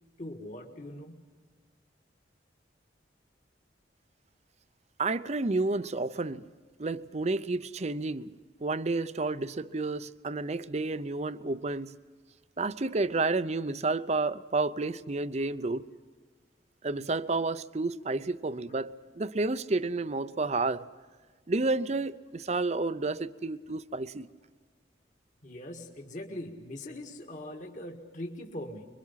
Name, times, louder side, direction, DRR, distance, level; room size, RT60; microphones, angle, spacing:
voice 1, 0.2-1.3 25.4-28.8, left 1 dB, 45° left, 1.9 m, -41 dB
voice 2, 5.0-6.5 6.8-8.3 8.6-12.0 12.6-15.9 16.8-20.8 21.5-24.3, right 3 dB, 40° right, 0.6 m, -30 dB
25.5 x 23.0 x 5.7 m
head